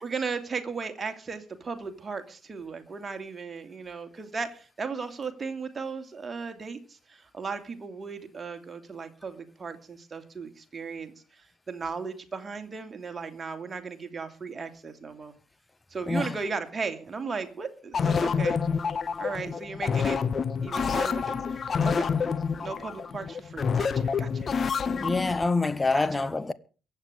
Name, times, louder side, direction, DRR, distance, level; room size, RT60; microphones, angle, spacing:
voice 1, 0.0-15.3 15.9-18.6 19.2-20.2 20.6-22.1 22.6-24.5 25.9-26.1, right 5 dB, 30° right, 2.6 m, -36 dB
sound 1, 17.9-25.4, left 6 dB, 40° left, 1.2 m, -28 dB
voice 2, 24.9-26.5, left 3 dB, 20° left, 1.1 m, -26 dB
23.0 x 8.4 x 5.1 m
figure-of-eight pair, 45°, 0 cm